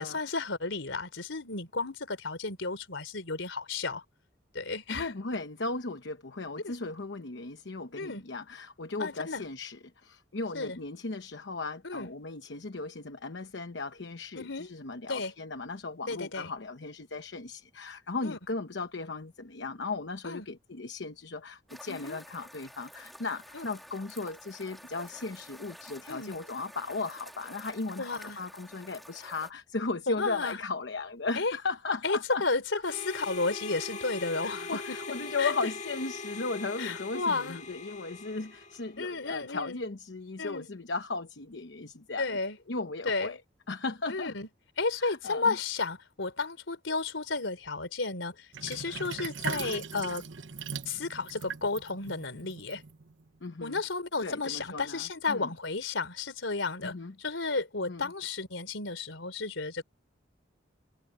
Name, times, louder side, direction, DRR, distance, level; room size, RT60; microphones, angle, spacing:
voice 1, 0.0-4.0 4.5-5.1 6.6-6.7 8.0-8.2 9.0-9.4 10.5-10.8 11.8-12.1 14.4-14.7 15.1-15.3 16.1-16.5 18.2-18.4 20.2-20.5 21.9-22.2 23.5-23.7 26.1-26.4 28.0-28.4 30.1-30.6 31.4-31.5 32.0-35.0 35.4-35.5 36.8-37.6 39.0-39.8 40.4-40.7 42.2-42.6 43.0-43.4 44.1-44.5 44.8-50.2 50.9-52.8 53.6-59.8, left 3 dB, 85° left, 3.7 m, -33 dB
voice 2, 4.9-32.4 34.4-42.4 42.7-43.4 43.7-44.3 45.0-45.5 53.4-53.8 54.2-55.5 56.8-57.1 57.9-58.1, left 3 dB, 70° left, 1.0 m, -36 dB
sound 1, 21.7-29.5, equal, ahead, 3.5 m, -50 dB
Harmonica, 32.8-39.2, left 3 dB, 40° left, 1.8 m, -41 dB
Sink (filling or washing), 48.5-53.3, right 5 dB, 80° right, 1.1 m, -39 dB
head